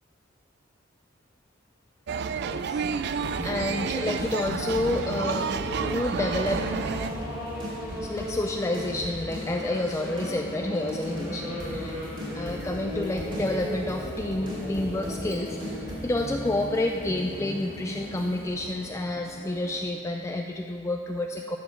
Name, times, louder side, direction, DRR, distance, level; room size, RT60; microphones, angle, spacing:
sound 1, 2.1-7.1, right 6 dB, 55° right, 0.4 m, -30 dB
sound 2, 2.3-19.8, left 1 dB, 50° left, 1.2 m, -47 dB
voice 1, 2.4-5.5 5.8-6.7 8.0-15.7 16.0-21.6, left 1 dB, 15° left, 3 dB, 0.4 m, -29 dB
sound 3, 3.2-18.5, equal, 25° right, 2.7 m, -35 dB
14.0 x 7.1 x 5.7 m, 2.7 s
head